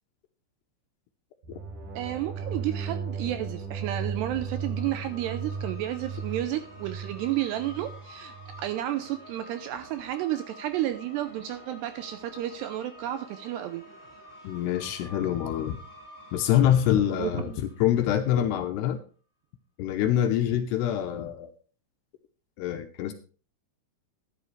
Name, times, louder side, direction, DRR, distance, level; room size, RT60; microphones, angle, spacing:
sound 1, 1.4-8.7, right 5 dB, 50° right, 4.5 m, -36 dB
voice 1, 2.0-13.8 17.2-17.3, right 13 dB, 80° right, 10 dB, 2.5 m, -32 dB
sound 2, 4.1-18.4, equal, 5° right, 3.9 m, -49 dB
voice 2, 14.4-15.8 16.3-19.0 19.8-21.5 22.6-23.1, left 10 dB, 75° left, 7 dB, 2.6 m, -25 dB
13.5 x 10.0 x 3.2 m, 0.38 s
omnidirectional pair, 5.4 m